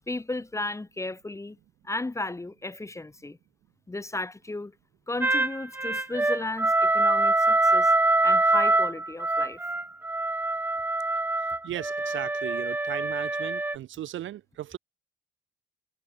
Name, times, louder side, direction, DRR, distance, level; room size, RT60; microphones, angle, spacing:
voice 1, 0.1-1.6 1.8-3.4 3.9-4.7 5.1-7.9 8.2-9.6, left 2 dB, 15° left, 1.1 m, -34 dB
sound 1, 5.2-13.8, right 2 dB, 10° right, 0.5 m, -24 dB
voice 2, 11.6-14.8, right 12 dB, 75° right, 1.8 m, -36 dB
cardioid pair, 90°, 20 cm